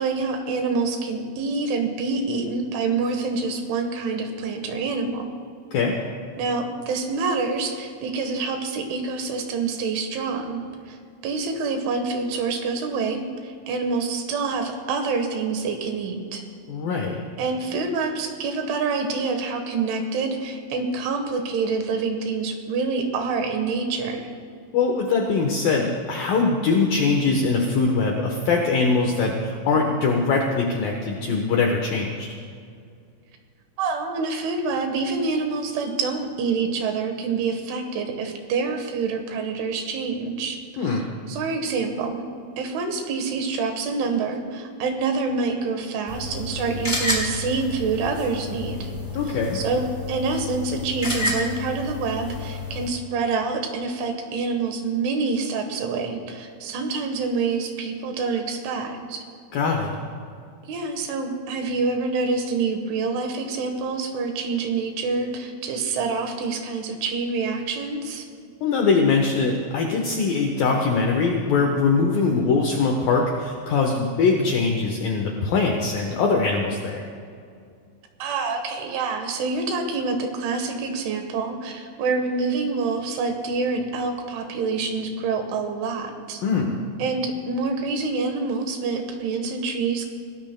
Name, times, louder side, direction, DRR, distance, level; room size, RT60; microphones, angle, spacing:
voice 1, 0.0-5.4 6.4-11.0 11.2-16.4 17.4-24.3 33.8-41.0 41.3-42.2 42.6-48.9 49.5-59.2 60.7-68.3 78.2-86.4 87.0-90.1, right 4 dB, 75° right, 4 dB, 3.6 m, -26 dB
voice 2, 16.7-17.2 24.7-32.3 40.8-41.1 49.2-49.6 59.5-60.0 68.6-77.1 86.4-86.8, left 4 dB, 80° left, 1 dB, 2.0 m, -22 dB
sound 1, 46.1-52.9, left 2 dB, 10° left, 2.5 m, -30 dB
27.5 x 18.0 x 2.2 m, 2.3 s
omnidirectional pair, 5.7 m